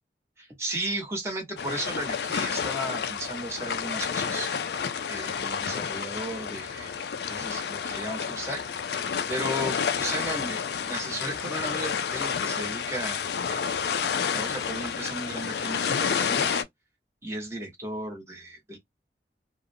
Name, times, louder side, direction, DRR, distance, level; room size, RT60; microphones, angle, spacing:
voice 1, 0.4-4.5 5.1-6.9 7.3-8.6 9.3-13.2 13.5-13.8 14.3-16.6 17.2-18.8, right 1 dB, 15° right, 1.0 m, -35 dB
sound 1, 1.6-16.6, left 7 dB, 65° left, 0.4 m, -30 dB
2.4 x 2.1 x 2.6 m
head